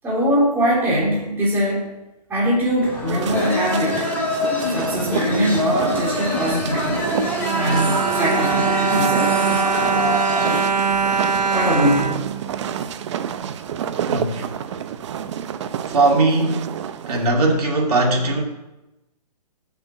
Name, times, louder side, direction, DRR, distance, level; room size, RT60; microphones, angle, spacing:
voice 1, 0.0-1.9 2.3-4.0 4.7-7.0 7.5-10.0 11.5-12.3, equal, 10° right, -6 dB, 3.0 m, -22 dB
sound 1, 2.8-10.7, left 2 dB, 5° left, 3.1 m, -25 dB
sound 2, 3.1-17.3, right 9 dB, 45° right, 0.7 m, -30 dB
Bowed string instrument, 6.9-13.1 13.8-13.9 14.2-14.3, right 6 dB, 85° right, 0.8 m, -23 dB
voice 2, 14.1-14.5 15.9-16.7 17.1-18.4, right 2 dB, 65° right, 0 dB, 2.4 m, -19 dB
7.0 x 6.3 x 7.5 m, 0.96 s
hypercardioid pair, 145°, 21 cm